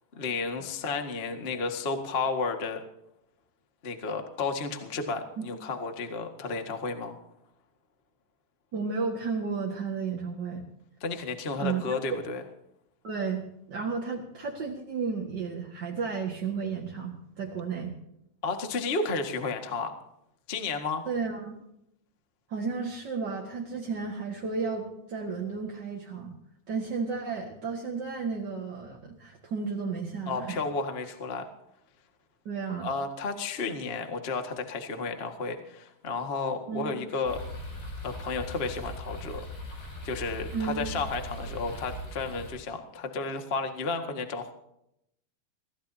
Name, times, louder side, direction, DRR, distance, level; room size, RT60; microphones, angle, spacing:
voice 1, 0.2-2.8 3.8-7.2 11.0-12.4 18.4-20.0 20.5-21.1 30.3-31.5 32.8-37.4 38.0-44.5, left 4 dB, 40° left, 5 dB, 0.8 m, -32 dB
voice 2, 8.7-10.6 11.6-12.2 13.0-18.0 21.0-21.5 22.5-26.4 26.7-30.6 32.4-32.9 36.7-37.0 40.5-40.9, right 5 dB, 40° right, -1 dB, 1.6 m, -33 dB
sound 1, 37.2-42.5, left 1 dB, 65° left, 8.1 m, -39 dB
24.0 x 16.5 x 2.8 m, 0.79 s
omnidirectional pair, 4.3 m